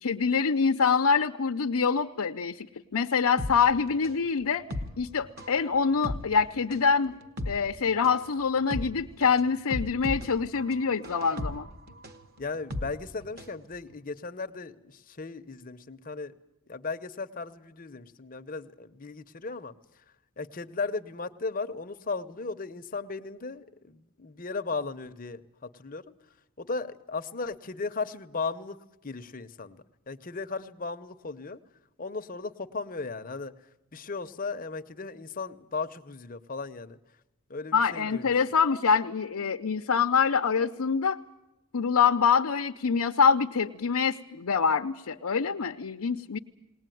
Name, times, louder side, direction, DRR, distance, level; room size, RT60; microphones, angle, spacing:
voice 1, 0.0-2.7 2.9-4.6 5.0-7.1 7.5-11.7 37.7-41.2 41.7-46.4, left 6 dB, 90° left, 5 dB, 0.7 m, -25 dB
sound 1, 3.4-13.6 13.9-14.0, left 1 dB, 45° right, 1.4 m, -37 dB
voice 2, 12.4-16.3 16.7-19.7 20.4-26.1 26.6-31.6 32.0-33.5 33.9-37.0 37.5-38.3, left 4 dB, 40° left, 9 dB, 0.8 m, -36 dB
20.0 x 19.0 x 9.2 m, 0.94 s
head